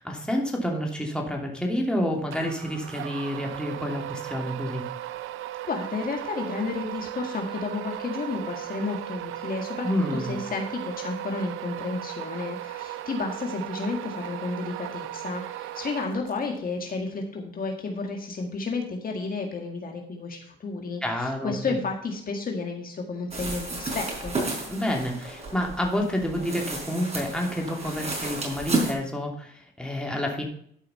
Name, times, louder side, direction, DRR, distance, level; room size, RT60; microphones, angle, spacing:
voice 1, 0.0-4.8 9.8-10.4 21.0-21.8 24.7-30.5, equal, 5° left, 0 dB, 2.9 m, -29 dB
sound 1, 2.3-16.6, right 14 dB, 90° right, 0.6 m, -37 dB
voice 2, 5.7-24.3, left 4 dB, 45° left, 2 dB, 1.9 m, -32 dB
sound 2, 23.3-28.9, right 2 dB, 30° right, 4.6 m, -32 dB
11.5 x 5.6 x 5.5 m, 0.64 s
cardioid pair, 90°, 20 cm